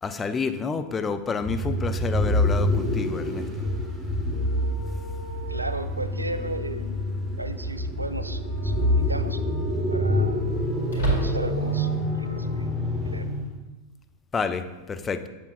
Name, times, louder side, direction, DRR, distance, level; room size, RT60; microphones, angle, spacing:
voice 1, 0.0-3.5 14.3-15.3, left 5 dB, 20° left, 9 dB, 0.5 m, -29 dB
sound 1, 1.4-13.6, left 1 dB, 15° right, 1.1 m, -27 dB
sound 2, 3.6-13.0, left 2 dB, 80° left, 1.3 m, -46 dB
voice 2, 5.5-9.4 9.9-10.6 10.9-12.7 13.0-13.3, right 2 dB, 85° right, 11 dB, 0.3 m, -35 dB
sound 3, 8.3-8.6 9.0-9.1 10.9-11.8, right 1 dB, 60° left, 2.0 m, -28 dB
8.0 x 6.8 x 2.4 m, 1.1 s
figure-of-eight pair, 90°, 0 cm